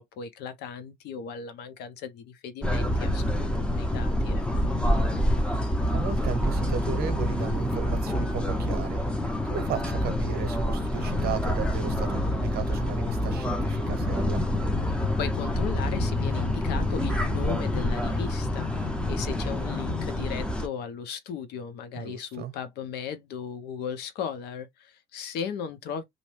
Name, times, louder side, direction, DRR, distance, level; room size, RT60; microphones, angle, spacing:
voice 1, 0.0-4.4 15.2-26.0, left 7 dB, 80° left, 0.7 m, -36 dB
sound 1, 2.6-20.7, left 1 dB, 5° left, 0.5 m, -27 dB
voice 2, 5.9-9.0 9.4-14.5 21.9-22.5, right 9 dB, 70° right, 0.8 m, -35 dB
2.7 x 2.1 x 3.0 m
cardioid pair, 110°, 17 cm